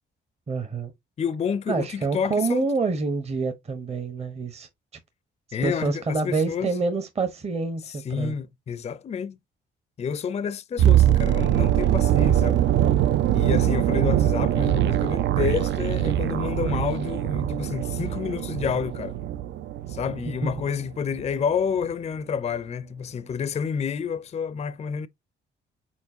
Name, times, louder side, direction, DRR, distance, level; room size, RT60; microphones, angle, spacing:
voice 1, 0.5-0.9 1.7-4.7 5.6-8.3 20.4-20.5, right 4 dB, 30° right, 0.9 m, -27 dB
voice 2, 1.2-2.7 5.5-6.7 7.9-9.4 10.0-12.6 13.3-19.2 19.9-25.1, left 7 dB, 35° left, 0.4 m, -29 dB
sound 1, 10.8-20.8 21.0-21.3, right 12 dB, 65° right, 0.4 m, -22 dB
4.5 x 4.2 x 2.7 m
cardioid pair, 90°, 20 cm